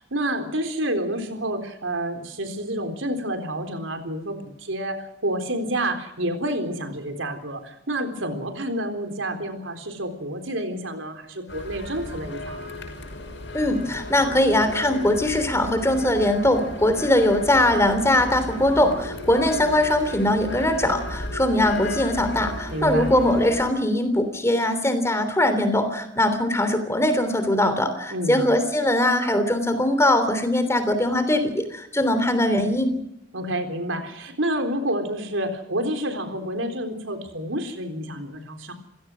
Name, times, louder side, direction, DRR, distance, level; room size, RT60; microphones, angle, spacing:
voice 1, 0.0-12.8 22.7-23.1 28.1-28.5 33.3-38.7, right 1 dB, 85° right, 6 dB, 3.8 m, -29 dB
sound 1, 11.5-23.7, left 1 dB, 65° left, 6.3 m, -34 dB
voice 2, 13.5-32.9, left 1 dB, 15° left, 10 dB, 3.2 m, -21 dB
28.5 x 16.5 x 6.3 m, 0.80 s
head